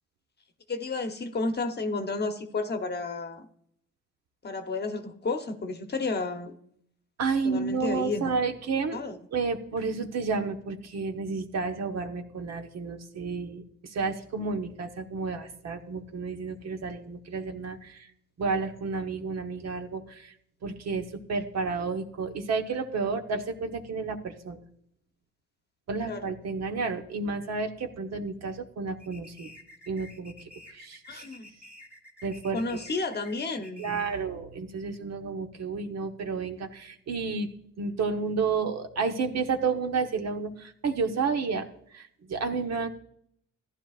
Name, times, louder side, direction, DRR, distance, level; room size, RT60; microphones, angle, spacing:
voice 1, 0.7-3.5 4.4-6.6 7.4-8.3 8.9-9.2 26.1-26.3 31.1-31.5 32.5-34.1, left 3 dB, 35° left, 7 dB, 1.0 m, -32 dB
voice 2, 7.2-9.0 9.3-18.1 18.4-20.3 20.6-24.6 25.9-29.5 29.9-31.2 32.2-32.8 33.8-37.5 37.8-41.7 41.9-42.9, right 4 dB, 60° right, 5 dB, 1.1 m, -31 dB
sound 1, 29.0-34.3, left 1 dB, 5° right, 1.8 m, -50 dB
14.5 x 11.0 x 2.5 m, 0.70 s
cardioid pair, 90°, 30 cm